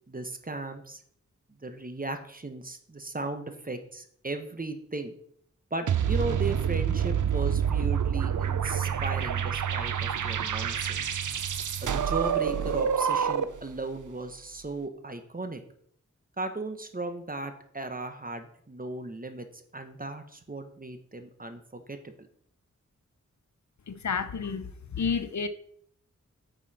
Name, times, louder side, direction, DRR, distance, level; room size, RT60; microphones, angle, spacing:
voice 1, 0.1-1.0 1.5-5.2 5.7-11.2 11.8-15.6 16.4-22.1, right 2 dB, 30° right, 8 dB, 1.1 m, -36 dB
sound 1, 5.9-13.7, right 8 dB, 85° right, 0.6 m, -27 dB
voice 2, 23.9-25.5, left 5 dB, 70° left, 11 dB, 0.7 m, -30 dB
8.9 x 5.6 x 4.3 m, 0.63 s
wide cardioid pair, 70°, 30 cm